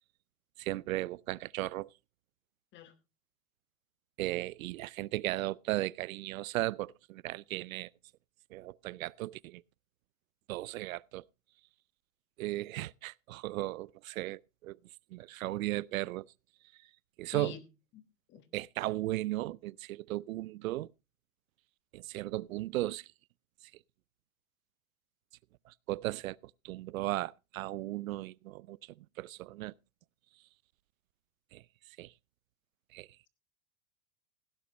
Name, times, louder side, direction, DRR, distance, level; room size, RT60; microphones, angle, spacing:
voice 1, 0.6-1.9 4.2-7.9 8.5-9.6 10.5-11.2 12.4-14.8 15.1-16.3 16.7-16.8 17.2-17.6 18.5-20.9 21.9-23.1 23.6-23.7 25.7-26.4 26.6-29.7 31.5-32.1 32.9-33.1, right 17 dB, 85° right, 0.5 m, -36 dB
voice 2, 17.9-18.5, left 10 dB, 30° left, 1.4 m, -46 dB
16.5 x 10.5 x 3.0 m
supercardioid pair, 140°, 40 cm